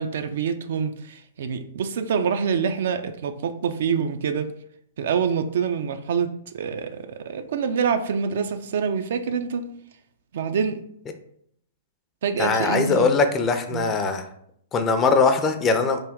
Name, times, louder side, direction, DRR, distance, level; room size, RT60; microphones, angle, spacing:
voice 1, 0.0-4.5 5.0-9.6 10.3-10.8 12.2-13.1 13.7-13.9, right 6 dB, 65° right, 0.3 m, -26 dB
voice 2, 12.4-14.2 14.7-16.0, left 4 dB, 25° left, 0.4 m, -21 dB
3.4 x 2.2 x 3.6 m
hypercardioid pair, 120°, 0 cm